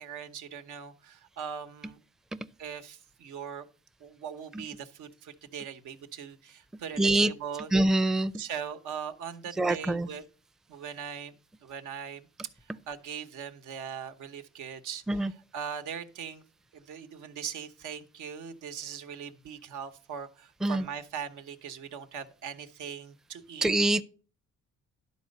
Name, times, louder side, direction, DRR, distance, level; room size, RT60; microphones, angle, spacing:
voice 1, 0.0-2.0 2.6-3.6 4.0-7.7 8.3-10.3 10.7-11.3 11.6-12.3 12.6-16.4 16.7-23.7, right 7 dB, 80° right, 1.0 m, -40 dB
voice 2, 7.0-7.3 7.7-8.3 9.6-10.1 15.1-15.3 20.6-20.8 23.6-24.0, right 2 dB, ahead, 0.4 m, -24 dB
11.5 x 4.2 x 6.5 m
cardioid pair, 90°, 30 cm